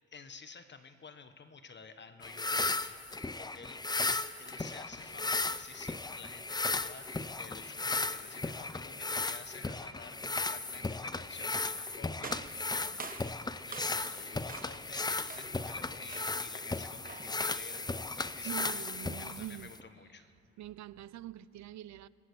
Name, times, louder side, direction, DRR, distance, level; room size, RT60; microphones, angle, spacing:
voice 1, 0.1-13.3 13.6-18.8 19.2-20.3, left 5 dB, 35° left, 1.1 m, -52 dB
sound 1, 2.2-19.8, left 3 dB, 15° left, 0.6 m, -36 dB
sound 2, 12.2-14.2 14.5-14.9 15.3-15.7 16.1-16.5 17.0-17.4, right 5 dB, 30° right, 1.1 m, -47 dB
voice 2, 18.4-19.7 20.6-22.1, right 13 dB, 65° right, 0.7 m, -44 dB
26.0 x 20.5 x 6.9 m
cardioid pair, 90°, 30 cm